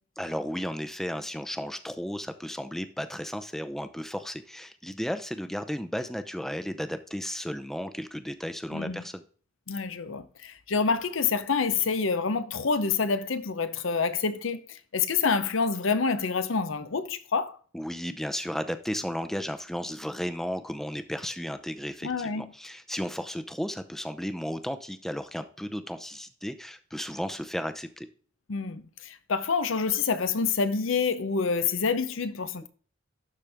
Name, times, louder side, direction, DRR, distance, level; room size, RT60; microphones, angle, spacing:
voice 1, 0.2-9.2 17.7-28.1, equal, ahead, 0.6 m, -34 dB
voice 2, 8.7-9.0 9.7-17.6 22.0-22.5 28.5-32.7, left 5 dB, 90° left, 0.8 m, -27 dB
12.0 x 4.4 x 3.4 m
head